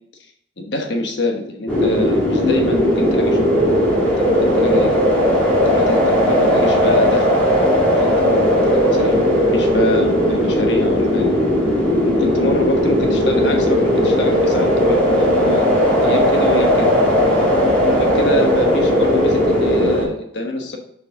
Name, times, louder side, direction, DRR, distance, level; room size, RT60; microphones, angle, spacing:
voice 1, 0.6-3.6 4.0-4.9 5.5-7.4 8.0-9.2 9.5-11.3 12.0-16.9 17.9-20.8, left 1 dB, 65° left, 3 dB, 1.2 m, -25 dB
sound 1, 1.7-20.0, equal, 5° left, 2.3 m, -16 dB
6.7 x 5.0 x 3.7 m, 0.73 s
head